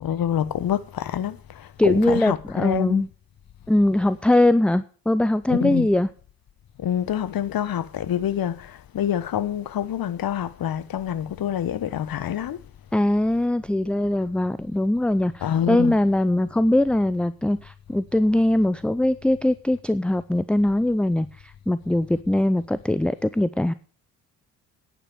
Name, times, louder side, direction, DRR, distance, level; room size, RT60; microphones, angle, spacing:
voice 1, 0.0-3.0 5.5-5.9 6.8-12.6 15.4-16.0, left 10 dB, 45° left, 1.2 m, -26 dB
voice 2, 1.8-3.1 3.7-6.1 12.9-21.3 21.7-23.7, left 1 dB, ahead, 0.5 m, -21 dB
10.0 x 8.9 x 6.8 m
hypercardioid pair, 45°, 48 cm